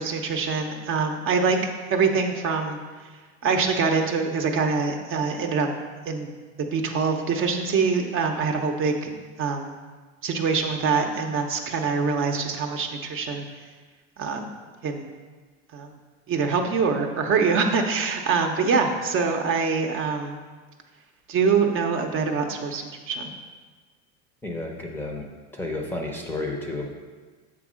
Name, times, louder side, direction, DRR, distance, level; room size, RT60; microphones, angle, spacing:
voice 1, 0.0-2.8 3.4-5.7 6.1-6.3 6.6-9.1 9.4-9.7 10.2-13.4 14.2-14.5 14.8-15.1 15.7-15.9 16.3-20.4 21.3-23.3, right 5 dB, 35° right, 3 dB, 0.8 m, -24 dB
voice 2, 24.4-25.3 25.5-26.9, left 2 dB, 5° left, 0 dB, 0.7 m, -31 dB
7.6 x 3.6 x 6.2 m, 1.4 s
supercardioid pair, 130°, 35 cm